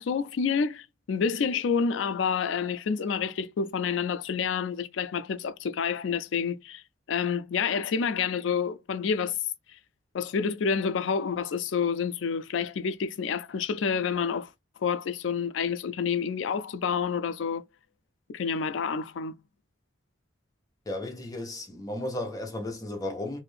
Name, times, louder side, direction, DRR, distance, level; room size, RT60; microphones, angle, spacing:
voice 1, 0.0-6.8 7.1-9.4 10.1-14.5 14.8-17.6 18.3-19.4, left 6 dB, 70° left, 0.4 m, -28 dB
voice 2, 20.9-23.4, left 1 dB, 20° left, 0.8 m, -34 dB
2.6 x 2.5 x 3.3 m
head